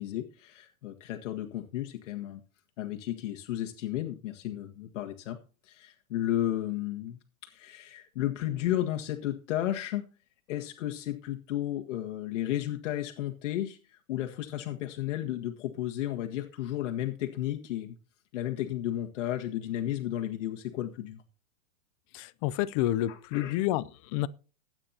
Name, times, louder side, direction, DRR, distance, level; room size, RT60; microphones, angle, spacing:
voice 1, 0.0-2.4 2.8-5.4 5.6-10.0 10.5-17.9 18.3-21.2 23.1-23.6, left 13 dB, 60° left, 1.6 m, -33 dB
voice 2, 22.1-24.3, left 14 dB, 25° left, 0.5 m, -29 dB
22.0 x 9.0 x 2.8 m
supercardioid pair, 155°, 41 cm